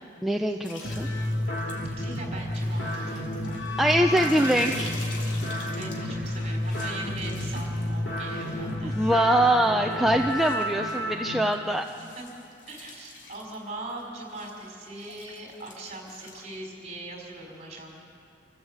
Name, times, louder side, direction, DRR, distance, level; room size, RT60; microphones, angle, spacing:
voice 1, 0.2-1.1 3.8-4.9 8.8-11.9, right 1 dB, ahead, 2 dB, 0.6 m, -23 dB
sound 1, 0.6-8.7 9.1-16.5, left 3 dB, 85° left, 3.4 m, -46 dB
voice 2, 0.7-3.2 5.6-8.9 12.0-12.3 12.7-18.0, right 2 dB, 35° right, 0 dB, 4.8 m, -41 dB
sound 2, 0.8-11.4, left 1 dB, 70° left, 2.6 m, -31 dB
sound 3, 2.5-3.3 4.1-4.2 5.1-6.1 6.4-6.7 6.9-7.0 7.9-9.0, equal, 20° left, 6.5 m, -52 dB
27.5 x 14.5 x 8.1 m, 2.5 s
head